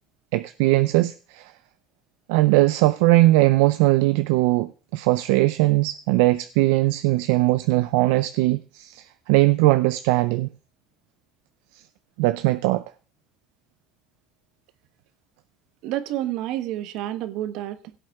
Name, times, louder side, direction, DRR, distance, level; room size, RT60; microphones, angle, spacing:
voice 1, 0.3-1.5 2.3-10.5 12.2-12.8, right 18 dB, 85° right, 0.5 m, -20 dB
voice 2, 15.8-17.9, right 13 dB, 70° right, 1.2 m, -29 dB
17.0 x 7.8 x 3.6 m
supercardioid pair, 110°, 0 cm